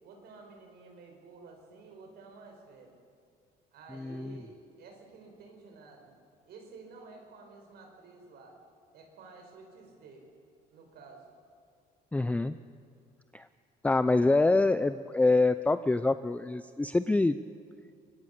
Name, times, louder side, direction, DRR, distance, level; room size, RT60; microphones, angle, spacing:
voice 1, 0.0-3.0 3.7-6.1 6.5-8.6 8.9-10.3 10.7-11.3, right 4 dB, 70° right, 3 dB, 5.3 m, -51 dB
voice 2, 3.9-4.4 12.1-12.6 13.3-13.5 13.8-17.4, left 2 dB, 10° left, 12 dB, 0.5 m, -25 dB
24.5 x 20.0 x 6.8 m, 2.4 s
cardioid pair, 110°, 17 cm